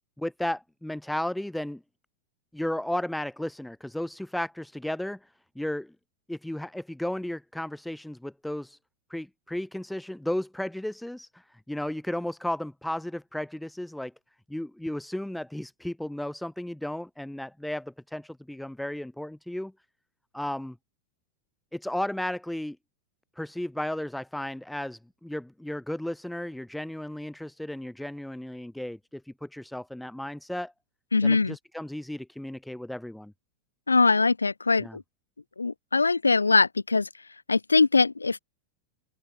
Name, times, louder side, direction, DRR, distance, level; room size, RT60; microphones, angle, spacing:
voice 1, 0.2-1.8 2.5-5.9 6.3-8.8 9.1-14.1 14.5-19.7 20.3-20.8 21.7-22.8 23.4-30.7 31.2-33.3 34.8-35.0, left 1 dB, 5° left, 2.2 m, -34 dB
voice 2, 31.1-31.6 33.9-35.0 35.6-37.1 37.5-38.4, left 4 dB, 80° left, 0.5 m, -22 dB
figure-of-eight pair, 90°, 0 cm